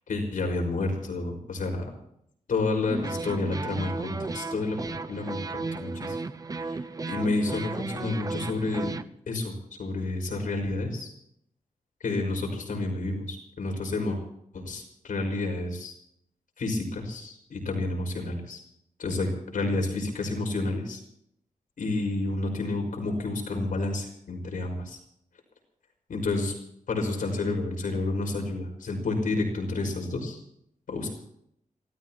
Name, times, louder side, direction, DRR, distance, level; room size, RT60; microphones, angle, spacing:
voice 1, 0.1-1.9 2.5-6.2 6.6-6.8 7.1-8.9 9.3-11.1 12.0-14.2 14.5-15.9 16.6-18.6 19.0-21.0 21.8-25.0 26.1-26.5 26.9-30.4 30.9-31.1, left 2 dB, 80° left, 2 dB, 5.5 m, -30 dB
sound 1, 2.9-9.0, right 3 dB, 25° right, 0.7 m, -34 dB
27.5 x 17.0 x 3.0 m, 0.72 s
wide cardioid pair, 160°, 14 cm